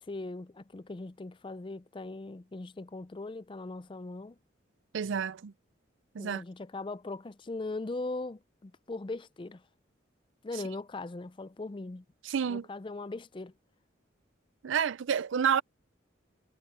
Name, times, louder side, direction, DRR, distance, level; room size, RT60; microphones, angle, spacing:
voice 1, 0.0-4.4 6.2-9.6 10.4-12.0 12.5-13.5, left 2 dB, 25° left, 0.4 m, -39 dB
voice 2, 4.9-5.5 6.1-6.4 12.2-12.6 14.6-15.6, right 7 dB, 75° right, 0.4 m, -29 dB
head